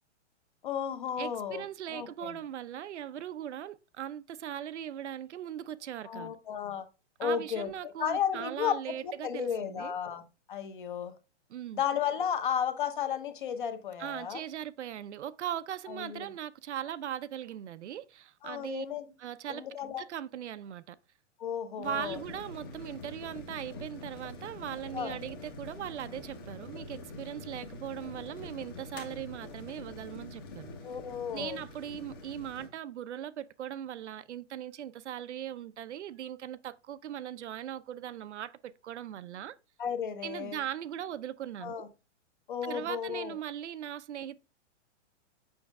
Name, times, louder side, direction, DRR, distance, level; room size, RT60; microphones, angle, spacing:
voice 1, 0.6-1.6 1.9-2.4 6.0-6.8 7.2-7.7 8.0-10.2 10.5-11.1 11.7-14.4 15.9-16.2 18.4-19.1 19.5-20.0 21.4-22.2 24.9-25.2 30.8-31.6 39.8-40.6 41.6-41.9 42.5-43.3, left 8 dB, 45° left, 1.0 m, -33 dB
voice 2, 1.2-6.4 7.2-9.9 11.5-11.8 14.0-18.9 19.2-21.0 21.8-30.7 31.3-39.6 40.2-41.9 42.6-44.4, right 10 dB, 70° right, 0.6 m, -39 dB
sound 1, 21.8-32.7, left 2 dB, 20° left, 0.8 m, -45 dB
7.1 x 6.3 x 2.3 m
hypercardioid pair, 180°, 36 cm